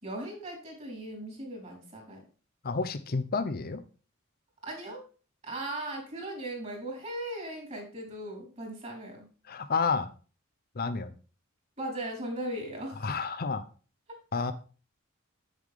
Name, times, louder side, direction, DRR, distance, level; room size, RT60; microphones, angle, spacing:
voice 1, 0.0-2.3 4.6-5.1 5.4-9.3 11.8-13.2 14.1-14.2, right 1 dB, 35° right, 0 dB, 4.3 m, -38 dB
voice 2, 2.6-3.8 9.5-10.1 10.8-11.1 13.0-13.6 14.3-14.5, left 4 dB, 45° left, 10 dB, 0.6 m, -30 dB
8.3 x 8.0 x 3.6 m, 0.36 s
head